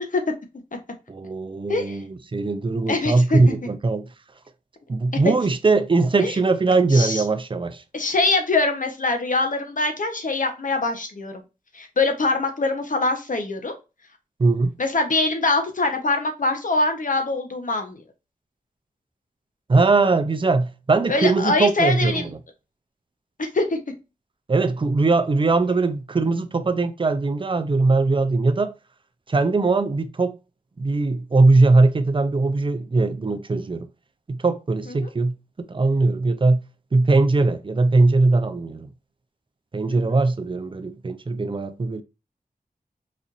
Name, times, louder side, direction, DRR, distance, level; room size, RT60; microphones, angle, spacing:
voice 1, 1.1-4.1 4.9-7.8 14.4-14.7 19.7-22.4 24.5-28.7 29.3-30.3 30.8-33.9 34.3-36.6 36.9-38.9 39.7-42.0, right 3 dB, 35° right, 0.5 m, -20 dB
voice 2, 2.9-3.4 5.2-5.3 6.2-6.4 6.9-7.2 7.9-11.4 11.7-13.7 14.8-18.0 21.1-22.3 23.4-23.8 34.9-35.1 39.9-40.2, left 2 dB, 60° left, 0.9 m, -23 dB
4.2 x 2.6 x 2.5 m
cardioid pair, 50°, 15 cm